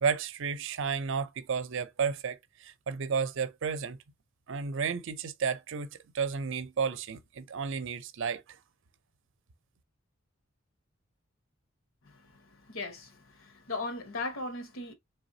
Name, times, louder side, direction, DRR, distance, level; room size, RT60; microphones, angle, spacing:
voice 1, 0.0-4.0 4.5-5.9 6.1-8.4, right 6 dB, 65° right, 0.5 m, -32 dB
voice 2, 12.0-14.9, left 3 dB, 80° left, 1.2 m, -38 dB
4.0 x 3.3 x 2.7 m
head